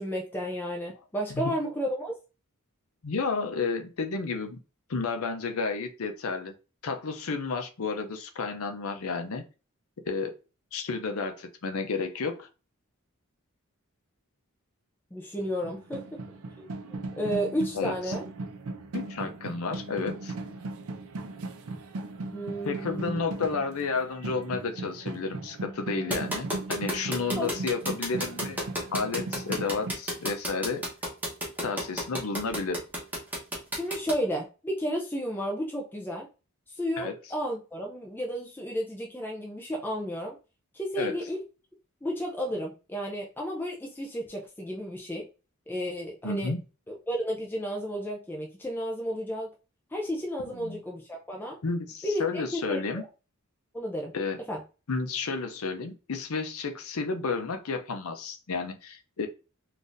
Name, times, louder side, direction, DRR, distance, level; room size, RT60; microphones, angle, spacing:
voice 1, 0.0-2.1 15.1-16.2 16.6-18.3 22.3-23.2 27.3-27.5 33.8-36.3 36.7-40.4 40.7-41.4 42.0-45.3 45.7-46.5 46.9-49.5 49.9-51.6 52.0-53.1 53.7-54.1 54.5-54.6, equal, 10° left, 0.4 m, -32 dB
voice 2, 3.0-4.6 4.9-6.5 6.8-9.4 10.1-10.3 10.7-12.5 17.7-17.9 18.9-20.3 22.6-28.6 28.9-30.9 31.6-32.8 37.0-37.1 41.0-41.2 46.2-46.6 50.5-50.8 51.6-53.0 54.1-54.4 54.9-59.3, left 4 dB, 80° left, 0.6 m, -31 dB
sound 1, 15.4-29.9, right 2 dB, 75° right, 0.5 m, -38 dB
sound 2, 26.1-34.1, equal, 10° right, 0.9 m, -31 dB
3.9 x 2.5 x 2.5 m
head